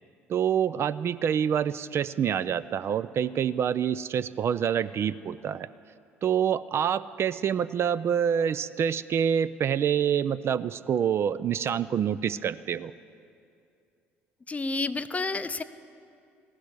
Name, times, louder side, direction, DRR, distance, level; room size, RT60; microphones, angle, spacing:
voice 1, 0.3-5.7 6.2-12.9, right 8 dB, 40° right, 15 dB, 0.3 m, -26 dB
voice 2, 14.5-15.6, left 3 dB, 20° left, 13 dB, 0.5 m, -30 dB
15.5 x 6.3 x 9.5 m, 2.5 s
figure-of-eight pair, 55°, 6 cm